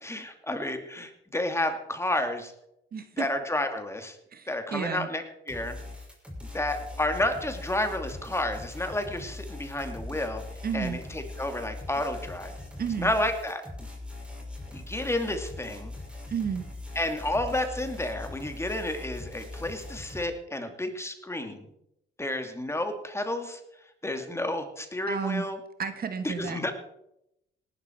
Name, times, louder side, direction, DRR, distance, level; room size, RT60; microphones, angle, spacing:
voice 1, 0.0-2.5 3.2-4.2 4.5-5.2 5.5-5.8 6.5-10.4 10.7-12.5 13.0-13.6 14.7-15.9 17.0-21.7 22.2-23.6 24.0-25.6 26.5-26.7, left 1 dB, 15° left, 6 dB, 2.5 m, -31 dB
voice 2, 2.9-3.3 4.3-5.1 10.6-11.0 12.8-13.1 16.3-16.7 25.1-25.5 25.8-26.7, right 6 dB, 50° right, 10 dB, 1.5 m, -32 dB
sound 1, 5.5-20.2, left 2 dB, 5° right, 5.9 m, -41 dB
18.0 x 12.0 x 4.6 m, 0.80 s
cardioid pair, 90°, 20 cm